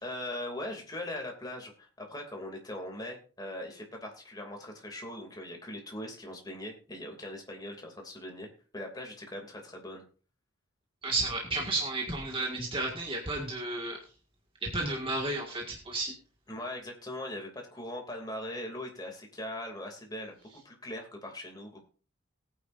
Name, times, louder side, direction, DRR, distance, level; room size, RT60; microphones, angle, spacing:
voice 1, 0.0-10.0 16.5-20.3 20.6-21.8, left 1 dB, 20° left, 1 dB, 2.7 m, -40 dB
voice 2, 11.0-14.0 14.6-16.1, right 2 dB, 25° right, -1 dB, 1.9 m, -32 dB
18.5 x 9.6 x 2.6 m, 0.37 s
head